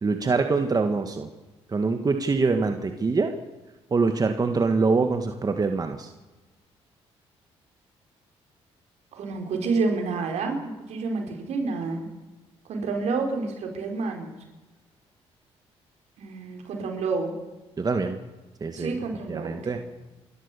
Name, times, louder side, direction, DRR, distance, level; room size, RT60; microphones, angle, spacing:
voice 1, 0.0-1.3 1.7-3.3 3.9-6.1 17.8-18.2 18.6-19.0 19.3-19.8, right 4 dB, 35° right, 6 dB, 1.7 m, -24 dB
voice 2, 9.1-12.1 12.6-14.3 16.2-17.3 18.7-19.8, right 4 dB, 75° right, 3 dB, 4.6 m, -29 dB
29.0 x 13.0 x 7.0 m, 1.1 s
cardioid pair, 75°, 12 cm